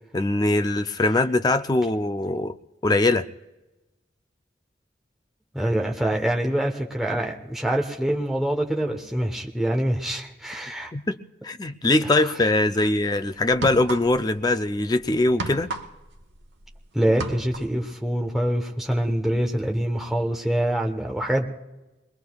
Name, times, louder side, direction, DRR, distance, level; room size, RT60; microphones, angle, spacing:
voice 1, 0.1-2.5 2.8-3.3 10.9-11.2 11.4-15.7, left 2 dB, 20° left, 0.4 m, -22 dB
voice 2, 5.5-10.9 12.0-12.1 16.9-21.5, right 1 dB, ahead, 1.0 m, -25 dB
sound 1, 12.7-12.9 13.5-14.4 14.7-16.8 17.0-17.8, right 2 dB, 80° right, 1.0 m, -33 dB
23.5 x 21.0 x 2.3 m
head